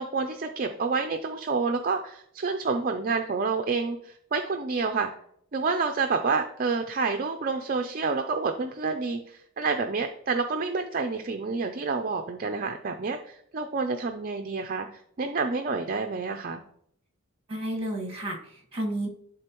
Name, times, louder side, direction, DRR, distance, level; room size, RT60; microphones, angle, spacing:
voice 1, 0.0-5.1 5.5-14.9 15.2-16.6, right 4 dB, 40° right, 5 dB, 0.4 m, -28 dB
voice 2, 17.5-19.1, right 1 dB, 25° right, 0 dB, 1.8 m, -31 dB
11.0 x 3.8 x 3.0 m, 0.67 s
head